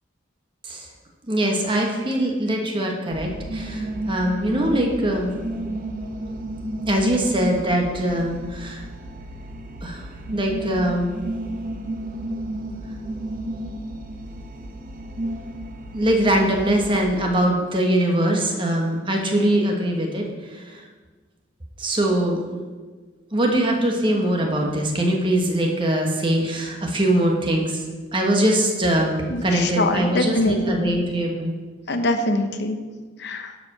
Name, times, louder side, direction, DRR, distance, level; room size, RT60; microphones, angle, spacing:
voice 1, 1.3-5.3 6.9-8.8 9.8-11.1 15.9-20.7 21.8-22.4 23.3-27.8 28.1-31.5, right 1 dB, 25° right, 1 dB, 1.3 m, -22 dB
sound 1, 3.1-17.0, right 1 dB, 45° right, 0.8 m, -32 dB
voice 2, 29.3-30.9 31.9-32.8 33.2-33.5, left 1 dB, 60° left, 6 dB, 0.9 m, -23 dB
11.5 x 5.0 x 6.0 m, 1.4 s
head